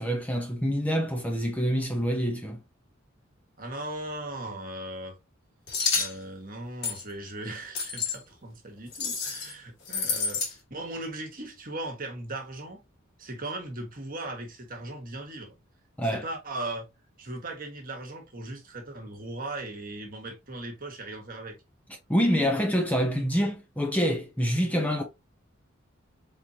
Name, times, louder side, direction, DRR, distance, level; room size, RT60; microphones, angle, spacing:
voice 1, 0.0-2.6 16.0-16.2 22.1-25.0, equal, 10° left, 0.7 m, -26 dB
voice 2, 3.6-5.2 5.9-12.8 13.2-15.5 16.1-16.9 17.2-21.6, right 2 dB, 45° right, 1.4 m, -38 dB
sound 1, 5.7-6.1 6.8-7.0 7.8-8.2 8.9-9.5 9.9-10.5, left 5 dB, 55° left, 2.1 m, -29 dB
4.4 x 3.8 x 2.7 m
head